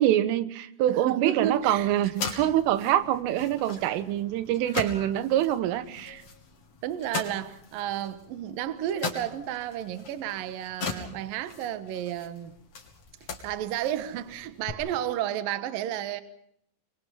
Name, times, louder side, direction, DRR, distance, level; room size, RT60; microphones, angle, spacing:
voice 1, 0.0-6.2, right 12 dB, 85° right, 3.7 m, -25 dB
voice 2, 0.9-1.9 3.8-3.9 6.8-12.5 13.4-16.2, right 11 dB, 65° right, 2.4 m, -32 dB
sound 1, 1.4-14.7, left 5 dB, 40° left, 3.4 m, -40 dB
26.5 x 22.5 x 5.6 m
omnidirectional pair, 5.7 m